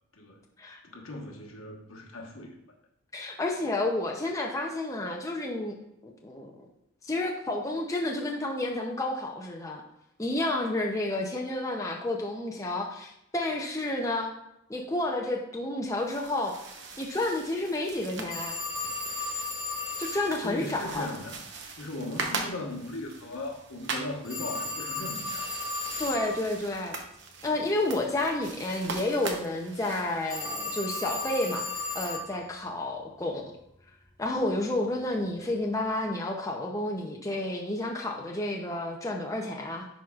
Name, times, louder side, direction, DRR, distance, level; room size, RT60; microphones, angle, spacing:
voice 1, 0.8-2.6 20.4-21.4 21.8-25.5, left 2 dB, 75° left, 1 dB, 1.2 m, -38 dB
voice 2, 3.1-5.8 6.0-6.7 7.0-9.8 10.2-14.3 14.7-16.6 17.0-18.6 20.0-21.1 26.0-27.0 27.4-31.7 31.9-33.5 34.2-39.9, left 2 dB, 15° left, 0 dB, 0.5 m, -30 dB
sound 1, 15.9-30.7, right 4 dB, 55° right, 0.8 m, -41 dB
Telephone, 18.3-20.3 24.2-26.3 30.3-32.3, left 2 dB, 5° right, 2.7 m, -34 dB
10.5 x 4.7 x 2.4 m, 0.80 s
head